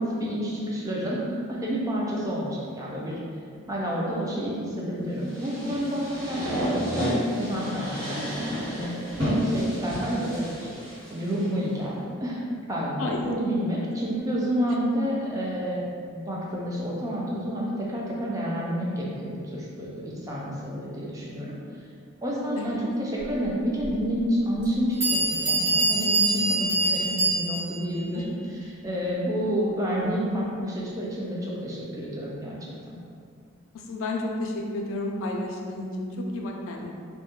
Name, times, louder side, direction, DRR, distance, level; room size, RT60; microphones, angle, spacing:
voice 1, 0.0-3.2 3.7-8.2 8.5-9.1 9.4-10.4 11.1-12.4 12.7-15.8 16.1-21.5 22.2-28.3 28.8-33.0, equal, 15° right, -5 dB, 0.3 m, -29 dB
sound 1, 5.3-11.4, equal, 75° right, 1.2 m, -30 dB
voice 2, 13.0-13.4 22.6-22.8 28.1-28.2 33.7-36.9, left 2 dB, 75° left, 1 dB, 0.3 m, -32 dB
Bell, 23.8-23.9 24.6-24.7 25.0-27.8, right 2 dB, 55° right, 1.1 m, -24 dB
2.2 x 2.1 x 2.8 m, 2.3 s
head